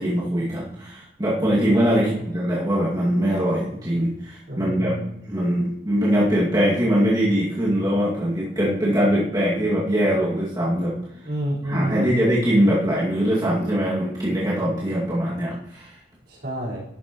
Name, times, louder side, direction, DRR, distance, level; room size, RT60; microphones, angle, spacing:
voice 1, 0.0-4.9 5.3-10.9 11.6-15.9, equal, 20° right, -8 dB, 2.1 m, -22 dB
voice 2, 1.9-2.3 4.5-5.1 11.2-12.2 16.3-16.8, equal, 55° right, -6 dB, 4.5 m, -29 dB
12.0 x 9.1 x 3.0 m, 0.76 s
head